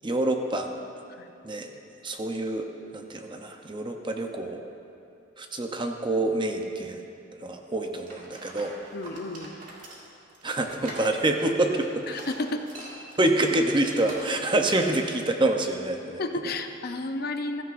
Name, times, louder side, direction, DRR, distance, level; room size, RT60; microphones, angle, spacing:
voice 1, 0.0-0.7 1.4-1.8 2.0-2.7 2.9-4.7 5.4-7.0 7.3-8.8 10.4-12.1 13.2-16.2, right 2 dB, 25° right, 4 dB, 0.7 m, -26 dB
sound 1, 8.1-14.6 14.8-15.1, right 1 dB, 45° right, 2.0 m, -44 dB
voice 2, 8.9-9.5 12.1-12.6 16.2-17.6, left 2 dB, 50° left, 6 dB, 0.6 m, -32 dB
15.5 x 14.0 x 2.6 m, 2.6 s
head